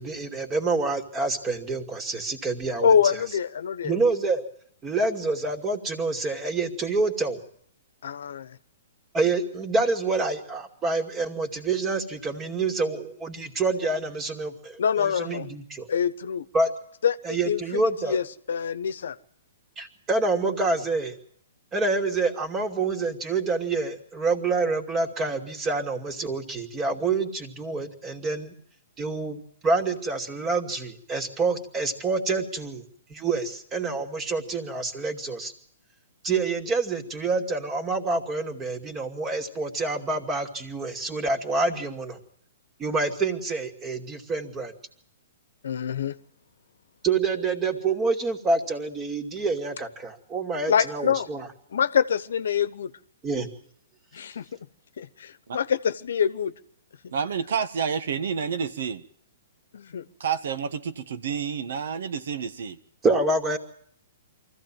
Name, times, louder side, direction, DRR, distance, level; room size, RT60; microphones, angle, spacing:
voice 1, 0.0-3.2 3.8-4.4 4.8-7.4 9.1-15.9 16.5-16.7 17.2-18.2 19.8-21.2 21.7-28.5 29.0-32.8 33.1-35.5 36.2-42.2 42.8-44.7 47.0-51.5 53.2-53.5 63.0-63.6, right 3 dB, 20° right, 2.7 m, -27 dB
voice 2, 2.8-3.9 8.0-8.6 14.8-15.5 15.9-16.5 17.0-17.2 17.5-19.2 45.6-46.1 50.7-51.3 51.7-52.9 54.1-54.4 55.0-56.5 57.0-57.1 59.7-60.0, left 7 dB, 70° left, 1.1 m, -25 dB
voice 3, 57.1-59.0 60.2-62.8, right 6 dB, 65° right, 1.5 m, -29 dB
24.0 x 15.5 x 9.1 m
hypercardioid pair, 125°, 0 cm